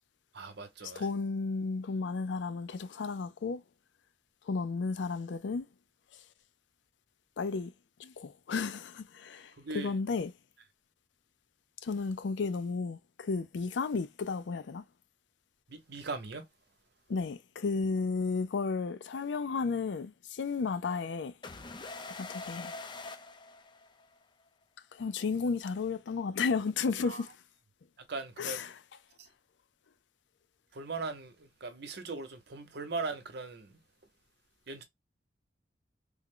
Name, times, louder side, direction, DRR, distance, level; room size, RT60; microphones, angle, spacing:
voice 1, 0.3-1.1 9.6-9.9 15.7-16.5 27.0-27.2 28.1-28.6 29.2-29.3 30.7-33.8 34.7-34.8, right 3 dB, 65° right, 0.8 m, -39 dB
voice 2, 1.0-3.6 4.5-5.7 7.4-7.7 8.0-10.3 11.8-14.8 17.1-21.3 22.2-22.7 24.9-27.3 28.4-28.7, left 4 dB, 90° left, 0.4 m, -33 dB
sound 1, 21.4-24.2, left 3 dB, 25° left, 0.5 m, -44 dB
3.5 x 2.1 x 3.7 m
head